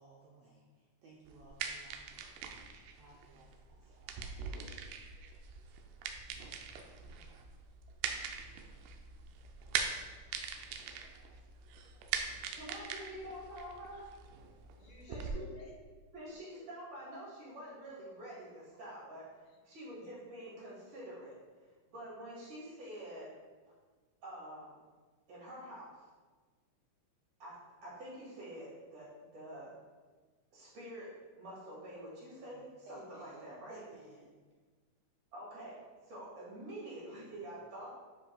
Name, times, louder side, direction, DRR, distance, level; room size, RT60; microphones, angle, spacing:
voice 1, 0.0-4.4 32.5-34.3, right 2 dB, 70° right, -4 dB, 1.5 m, -58 dB
sound 1, 1.3-15.3, right 6 dB, 90° right, 2.2 m, -42 dB
voice 2, 8.3-8.6 9.8-10.8 12.4-12.6 14.8-15.7 16.1-16.7 19.5-19.6, left 2 dB, 85° left, -3 dB, 3.0 m, -59 dB
voice 3, 12.6-14.1 15.1-15.5 16.1-19.2 19.6-21.3 21.6-23.3 24.2-24.8 25.3-26.0 27.4-29.7 30.5-33.8 35.3-37.9, right 1 dB, 55° right, -7 dB, 3.1 m, -47 dB
10.0 x 5.1 x 2.3 m, 1.4 s
omnidirectional pair, 3.6 m